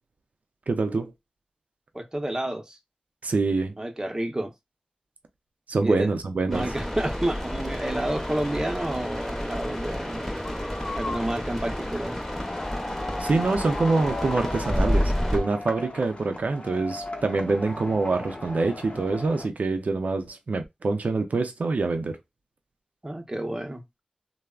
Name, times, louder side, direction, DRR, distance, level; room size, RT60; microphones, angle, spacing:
voice 1, 0.7-1.1 3.2-3.7 5.7-6.7 13.2-22.2, right 3 dB, 80° right, 0.5 m, -25 dB
voice 2, 1.9-2.8 3.8-4.5 5.8-6.1 6.5-10.3 11.0-12.2 23.0-23.8, right 1 dB, 25° right, 0.7 m, -30 dB
sound 1, 6.5-15.4, equal, 10° left, 0.7 m, -30 dB
sound 2, 7.8-19.5, left 2 dB, 55° left, 0.7 m, -37 dB
3.3 x 2.0 x 2.3 m
wide cardioid pair, 60°, 3 cm